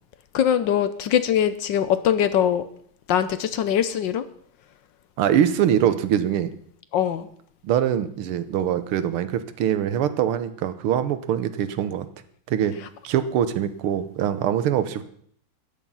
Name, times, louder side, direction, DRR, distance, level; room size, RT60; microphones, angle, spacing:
voice 1, 0.3-2.6 3.1-4.2 6.9-7.3, left 9 dB, 70° left, 13 dB, 1.3 m, -22 dB
voice 2, 5.2-6.5 7.6-12.1 12.5-12.8 13.0-15.0, right 10 dB, 90° right, 12 dB, 1.8 m, -23 dB
13.5 x 9.3 x 5.5 m, 0.64 s
omnidirectional pair, 2.3 m